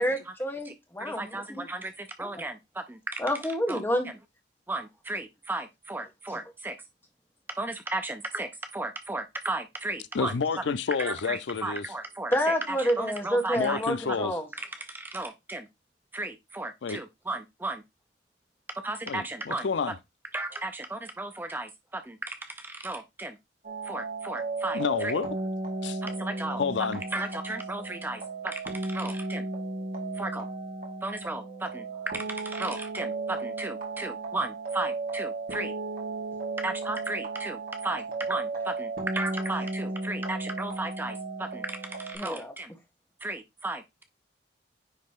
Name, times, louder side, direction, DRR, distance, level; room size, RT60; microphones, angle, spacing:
voice 1, 0.0-1.4 2.2-2.3 3.2-4.1 12.3-14.5 42.1-42.5, equal, 15° left, 1.5 m, -28 dB
voice 2, 1.0-3.2 3.7-3.8 4.7-6.8 7.5-10.4 11.0-13.8 14.1-14.2 14.6-15.7 16.1-17.8 18.8-19.7 20.3-23.4 23.8-25.1 26.0-26.6 27.1-29.5 30.2-30.5 31.0-35.7 36.6-42.7 43.2-44.0, right 2 dB, 10° right, 0.4 m, -35 dB
voice 3, 10.1-11.9 13.6-14.4 16.8-17.0 19.1-19.9 24.7-25.3 25.8-26.0 26.6-27.0, left 5 dB, 80° left, 0.5 m, -29 dB
sound 1, 23.6-42.2, right 3 dB, 55° right, 2.2 m, -34 dB
9.5 x 3.3 x 3.5 m
head